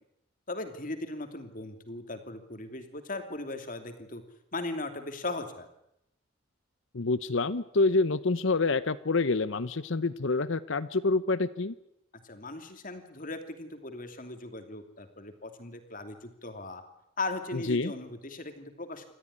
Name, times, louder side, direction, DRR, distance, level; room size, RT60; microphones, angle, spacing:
voice 1, 0.5-4.2 4.5-5.7 12.2-16.8 17.2-19.0, left 2 dB, 40° left, 7 dB, 2.8 m, -38 dB
voice 2, 6.9-11.7 17.5-17.9, left 3 dB, 65° left, 14 dB, 0.8 m, -27 dB
28.0 x 14.0 x 10.0 m, 0.82 s
head